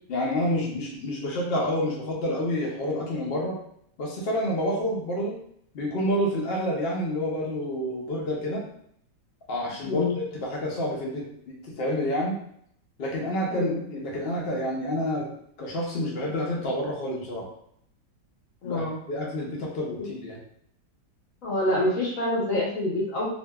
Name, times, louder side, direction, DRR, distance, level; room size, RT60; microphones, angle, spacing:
voice 1, 0.1-3.6 4.0-5.4 5.7-8.6 9.5-11.3 11.7-12.3 13.0-15.3 15.6-17.4 18.6-20.4, equal, 85° left, -3 dB, 0.5 m, -28 dB
voice 2, 9.8-10.2 13.5-13.8 18.6-19.0 20.0-20.1 21.4-23.3, left 1 dB, 55° left, -4 dB, 1.1 m, -26 dB
2.9 x 2.6 x 2.2 m, 0.68 s
omnidirectional pair, 2.0 m